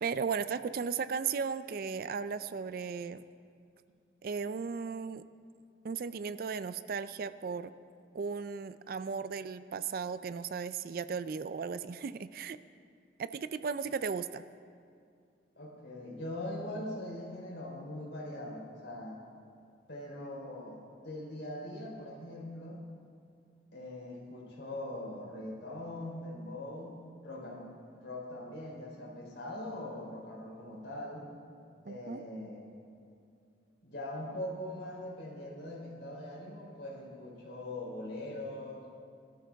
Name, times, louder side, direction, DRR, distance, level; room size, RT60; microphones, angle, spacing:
voice 1, 0.0-3.2 4.2-5.2 5.8-7.7 8.1-12.6 13.2-14.4 31.9-32.2, right 5 dB, 55° right, 13 dB, 0.4 m, -36 dB
voice 2, 15.6-19.2 19.9-22.8 23.7-27.0 27.2-31.3 31.9-32.8 33.8-38.8, left 1 dB, 80° left, -2 dB, 3.7 m, -42 dB
20.0 x 13.0 x 3.5 m, 2.3 s
head